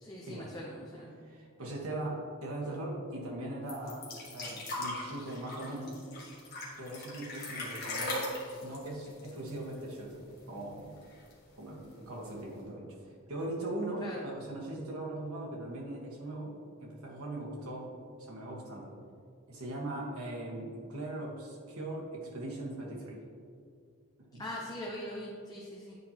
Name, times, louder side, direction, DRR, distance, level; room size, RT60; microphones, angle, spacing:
voice 1, 0.0-1.1 14.0-14.3 24.4-26.0, left 1 dB, 15° left, -3 dB, 0.6 m, -41 dB
voice 2, 1.2-4.0 4.3-6.0 6.8-8.3 8.6-11.0 11.6-12.9 13.3-17.9 18.2-18.9 19.5-23.2 24.2-24.4, right 1 dB, 75° right, -3 dB, 1.4 m, -40 dB
sound 1, 3.7-10.1 10.4-10.5 10.8-11.5 12.3-12.4, left 1 dB, 45° left, 1.4 m, -39 dB
9.4 x 4.4 x 2.9 m, 2.2 s
head